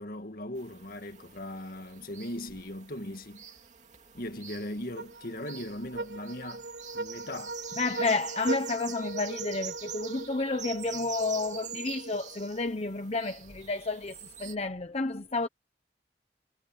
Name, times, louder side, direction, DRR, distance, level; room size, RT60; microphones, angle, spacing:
voice 1, 0.0-3.4 4.1-6.7 6.9-7.6, left 1 dB, 55° left, 2.0 m, -39 dB
sound 1, 0.5-14.6, right 9 dB, 40° right, 2.6 m, -46 dB
sound 2, 5.0-12.5, right 2 dB, 85° right, 1.4 m, -40 dB
voice 2, 7.8-15.5, left 3 dB, 35° left, 1.0 m, -31 dB
head